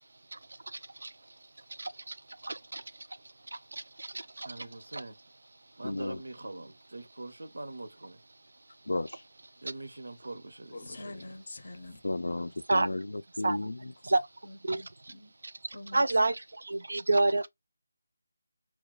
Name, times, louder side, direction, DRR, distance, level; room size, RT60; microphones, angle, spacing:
voice 1, 2.4-2.8 4.0-4.1 4.4-4.5 4.9-5.0 12.7-12.9 13.4-13.6 14.0-14.3 14.7-14.8 15.9-16.4 16.7-17.5, right 2 dB, 60° right, 0.3 m, -27 dB
voice 2, 4.4-5.2 5.8-8.2 9.6-10.8, right 2 dB, 85° right, 0.7 m, -43 dB
voice 3, 5.8-6.2 8.9-9.2 12.0-13.1 13.4-13.8, left 2 dB, 90° left, 0.3 m, -33 dB
voice 4, 10.7-12.0 14.4-15.3 15.7-16.1, left 2 dB, 40° left, 0.5 m, -45 dB
2.3 x 2.2 x 3.6 m
figure-of-eight pair, 180°, 0 cm